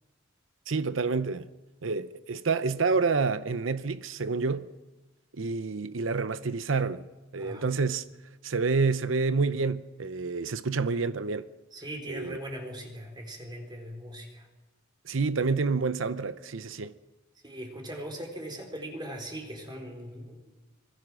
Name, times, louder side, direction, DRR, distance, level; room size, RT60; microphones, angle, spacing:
voice 1, 0.7-1.5 1.8-4.7 5.3-7.0 7.3-8.0 8.4-11.5 12.1-12.4 15.0-16.9, right 4 dB, 75° right, 0.8 m, -28 dB
voice 2, 7.4-7.7 11.7-14.5 17.4-20.4, right 1 dB, 20° right, 4.3 m, -40 dB
25.5 x 23.0 x 6.2 m
head